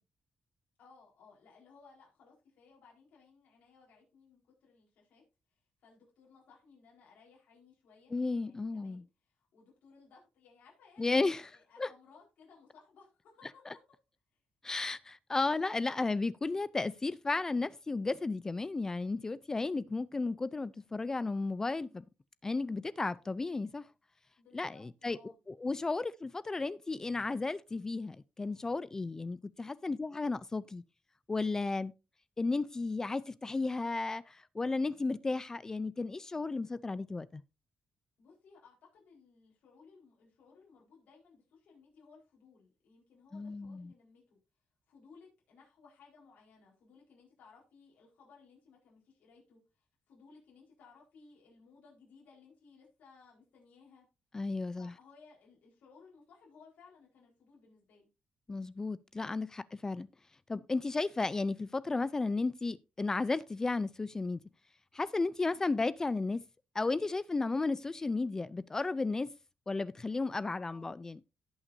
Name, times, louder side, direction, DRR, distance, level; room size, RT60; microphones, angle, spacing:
voice 1, 0.8-5.2 5.5-8.1 8.4-13.8 24.4-25.4 38.2-44.4 44.9-54.1 54.4-58.1 65.5-65.7 70.7-71.0, left 5 dB, 75° left, 4.3 m, -61 dB
voice 2, 8.1-9.0 11.0-11.4 11.8-11.9 14.6-22.0 22.4-23.9 24.5-25.2 25.5-30.8 31.3-31.9 32.4-37.4 43.3-43.9 54.3-54.9 58.5-60.1 60.5-64.4 64.9-66.4 66.7-69.3 69.7-71.2, left 3 dB, 20° left, 0.4 m, -34 dB
17.5 x 6.0 x 2.6 m
cardioid pair, 130°, 3 cm